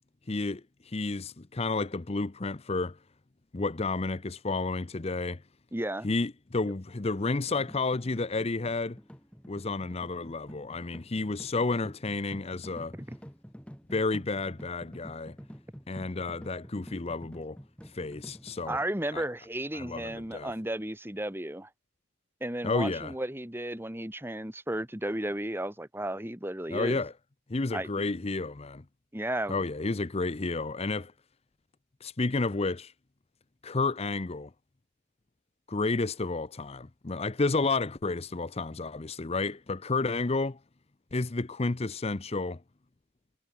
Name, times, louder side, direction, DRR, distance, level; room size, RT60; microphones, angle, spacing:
voice 1, 0.3-3.0 3.5-5.4 6.0-9.0 9.5-12.9 13.9-15.3 15.9-17.6 17.8-18.8 19.1-19.3 19.7-20.5 22.6-23.1 26.7-27.1 27.5-28.8 29.5-31.1 32.0-32.9 33.6-34.5 35.7-40.6 41.1-42.6, left 3 dB, 30° left, 0.6 m, -31 dB
voice 2, 5.7-6.1 12.9-13.2 18.7-21.7 22.4-27.0 27.7-28.1 29.1-29.5, right 1 dB, 10° right, 1.7 m, -34 dB
sound 1, 7.5-18.8, equal, 5° left, 7.6 m, -48 dB
head